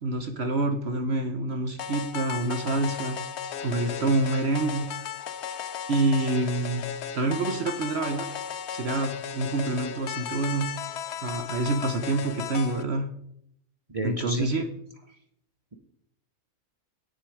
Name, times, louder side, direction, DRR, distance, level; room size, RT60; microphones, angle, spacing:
voice 1, 0.0-3.2 3.6-4.9 5.9-6.8 7.1-8.3 8.7-10.7 11.2-13.1 14.0-14.6, right 2 dB, 50° right, 7 dB, 1.1 m, -27 dB
sound 1, 1.8-12.8, left 8 dB, 60° left, 0.8 m, -35 dB
voice 2, 13.9-14.5, right 1 dB, 25° right, 3 dB, 1.0 m, -30 dB
10.0 x 9.3 x 4.9 m, 0.72 s
omnidirectional pair, 1.5 m